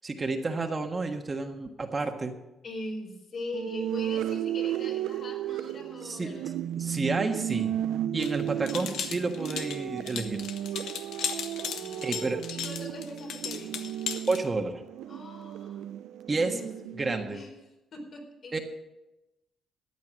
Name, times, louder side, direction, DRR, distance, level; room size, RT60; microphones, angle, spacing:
voice 1, 0.0-2.3 6.0-6.3 6.8-7.7 8.1-10.4 12.0-12.4 14.3-14.8 16.3-16.6 17.0-17.4 18.5-18.6, right 3 dB, 30° right, 4 dB, 1.5 m, -30 dB
voice 2, 2.6-6.6 8.4-9.3 11.7-13.9 15.1-15.8 16.3-17.5 17.9-18.6, left 1 dB, 55° left, 1 dB, 4.7 m, -42 dB
sound 1, 3.5-17.2, right 11 dB, 80° right, 0.4 m, -34 dB
sound 2, 8.2-14.4, left 8 dB, 80° left, 1.2 m, -36 dB
14.0 x 9.4 x 6.3 m, 0.97 s
cardioid pair, 90°, 0 cm